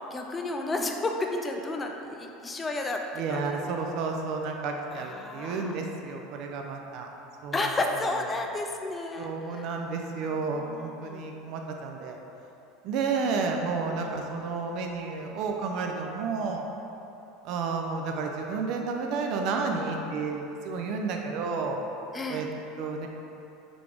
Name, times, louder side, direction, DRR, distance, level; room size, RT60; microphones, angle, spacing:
voice 1, 0.1-3.0 3.3-3.7 4.9-5.8 7.5-9.7 10.5-11.3 14.0-14.2 22.1-22.5, left 2 dB, 20° left, 2 dB, 0.4 m, -32 dB
voice 2, 3.2-7.1 7.4-7.7 9.2-12.2 12.8-16.7 17.4-21.8 22.3-22.5 22.8-23.1, right 4 dB, 50° right, 2 dB, 0.4 m, -31 dB
3.7 x 3.4 x 3.2 m, 2.9 s
figure-of-eight pair, 75°, 0 cm